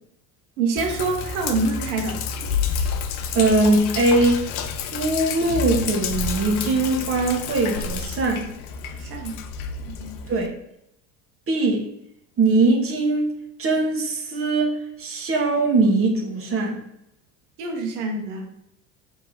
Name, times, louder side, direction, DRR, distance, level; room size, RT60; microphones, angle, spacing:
voice 1, 0.6-2.2 9.0-9.4 9.9-10.2 17.6-18.5, right 3 dB, 65° right, 2 dB, 1.1 m, -26 dB
Sink (filling or washing), 0.8-10.5, left 6 dB, 65° left, 0.6 m, -29 dB
voice 2, 3.3-4.5 4.9-8.5 10.3-10.6 11.5-11.9 12.4-16.8, right 2 dB, 30° right, 1 dB, 1.0 m, -21 dB
3.1 x 2.8 x 3.9 m, 0.78 s
hypercardioid pair, 80°, 48 cm